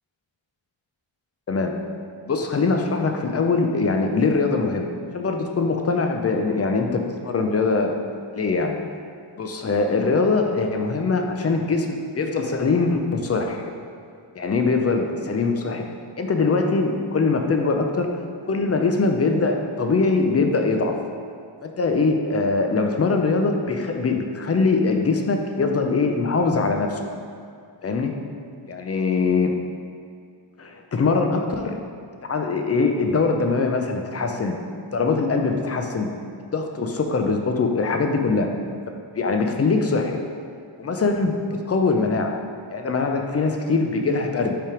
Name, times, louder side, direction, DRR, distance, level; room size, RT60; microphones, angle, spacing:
voice 1, 2.2-8.0 8.3-8.8 9.4-13.6 14.4-15.8 16.2-18.2 18.5-20.9 21.6-27.1 27.8-28.1 28.7-29.6 30.6-31.8 32.2-34.5 34.9-36.1 36.5-38.5 38.9-40.2 40.8-41.4 41.7-42.4 42.7-44.6, left 4 dB, 30° left, 4 dB, 0.4 m, -22 dB
5.5 x 3.5 x 4.9 m, 2.3 s
wide cardioid pair, 145°, 50 cm